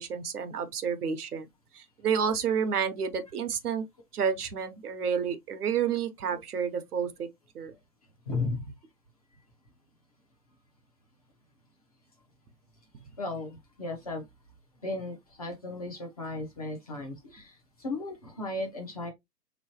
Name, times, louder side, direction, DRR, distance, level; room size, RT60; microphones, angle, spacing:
voice 1, 0.0-1.5 1.7-3.8 4.1-7.3 7.5-7.7, right 7 dB, 65° right, 0.9 m, -30 dB
voice 2, 8.3-8.6 13.2-14.3 14.8-19.1, left 2 dB, 25° left, 0.6 m, -35 dB
3.7 x 3.0 x 2.8 m
hypercardioid pair, 150°, 48 cm